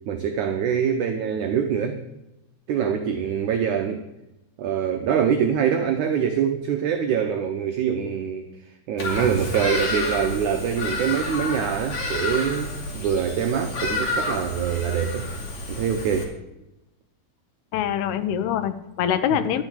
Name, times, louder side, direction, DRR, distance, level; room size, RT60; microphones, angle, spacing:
voice 1, 0.1-2.0 2.7-4.0 4.6-8.5 8.9-15.3 15.7-16.3, right 8 dB, 75° right, 5 dB, 1.8 m, -24 dB
Bird vocalization bird call bird song, 9.0-16.2, left 2 dB, 50° left, 3.5 m, -29 dB
voice 2, 17.7-19.6, left 9 dB, 85° left, 10 dB, 2.9 m, -24 dB
12.0 x 6.8 x 9.1 m, 0.92 s
omnidirectional pair, 4.5 m